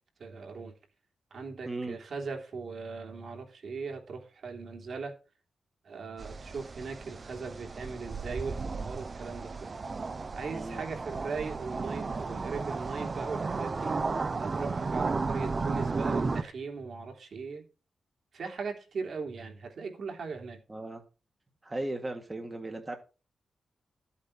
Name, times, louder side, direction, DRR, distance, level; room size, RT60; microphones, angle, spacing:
voice 1, 0.2-0.7 1.3-5.2 5.8-9.8 10.3-13.9 14.4-17.6 18.3-20.6, right 4 dB, 55° right, 3.3 m, -39 dB
voice 2, 1.6-2.0 10.5-10.8 20.7-21.0 21.6-23.0, right 2 dB, 15° right, 1.6 m, -36 dB
sound 1, 6.2-16.4, right 4 dB, 30° right, 0.8 m, -34 dB
13.5 x 8.4 x 4.2 m
wide cardioid pair, 165°, 0 cm